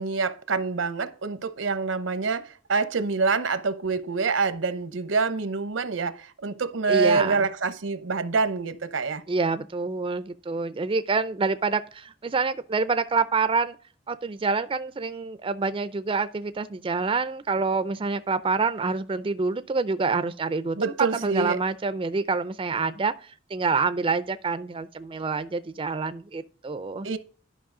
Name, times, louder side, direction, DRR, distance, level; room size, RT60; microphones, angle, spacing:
voice 1, 0.0-9.2 20.8-21.6 27.0-27.2, right 4 dB, 85° right, 0.8 m, -26 dB
voice 2, 6.9-7.4 9.3-13.8 14.1-27.1, right 4 dB, 25° right, 0.4 m, -27 dB
11.0 x 5.4 x 3.7 m
head